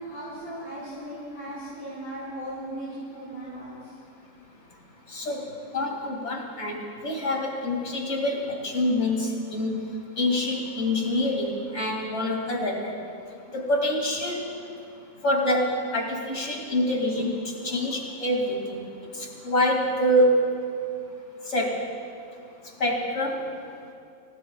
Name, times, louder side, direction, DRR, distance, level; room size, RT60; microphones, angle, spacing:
voice 1, 0.0-3.8, right 1 dB, 30° left, -11 dB, 4.7 m, -37 dB
voice 2, 5.1-5.5 5.7-6.8 7.0-9.8 10.2-12.9 13.5-14.5 15.2-18.8 19.4-20.5 21.5-21.8 22.8-23.4, left 1 dB, 50° left, -1 dB, 2.7 m, -26 dB
27.5 x 16.5 x 2.3 m, 2.4 s
omnidirectional pair, 1.6 m